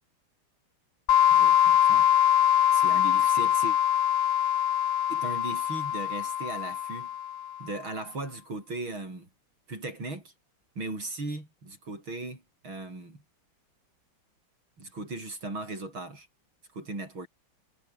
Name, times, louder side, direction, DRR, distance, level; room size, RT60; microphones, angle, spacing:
sound 1, 1.1-7.6, left 10 dB, 70° left, 1.9 m, -23 dB
voice 1, 1.3-2.1 2.7-3.8 5.1-7.1 7.6-9.3 9.7-10.3 10.8-13.2 14.8-16.3 16.7-17.3, right 2 dB, 75° right, 8.8 m, -37 dB
omnidirectional pair, 2.2 m